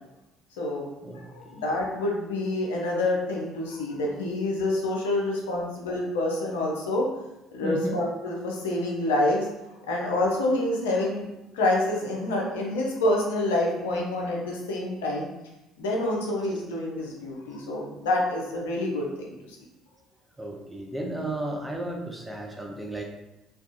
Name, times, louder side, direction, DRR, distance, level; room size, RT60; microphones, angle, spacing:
voice 1, 0.6-0.9 1.1-7.1 7.5-11.3 11.5-15.3 15.8-19.6, left 1 dB, 80° left, -2 dB, 0.4 m, -27 dB
voice 2, 7.6-8.0 17.9-18.0 20.4-23.0, right 1 dB, 10° right, 0 dB, 0.5 m, -33 dB
2.3 x 2.3 x 2.5 m, 0.94 s
hypercardioid pair, 60°, 0 cm